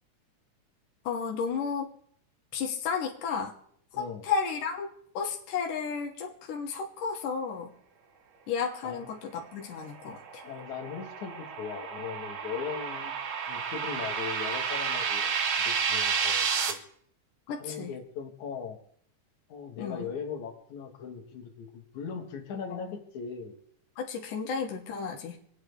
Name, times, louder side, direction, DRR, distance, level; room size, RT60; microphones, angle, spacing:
voice 1, 1.0-1.9 2.5-3.5 3.9-4.9 5.1-7.7 8.5-10.4 17.5-18.0 19.8-20.1 22.7-22.8 24.0-25.4, left 6 dB, 90° left, 1 dB, 2.8 m, -33 dB
sound 1, 9.9-16.7, right 6 dB, 70° right, 1.2 m, -31 dB
voice 2, 10.4-13.1 13.5-15.3 15.6-16.8 17.6-18.8 19.5-23.6, left 6 dB, 70° left, 1 dB, 3.0 m, -39 dB
27.0 x 9.4 x 3.4 m, 0.66 s
omnidirectional pair, 3.6 m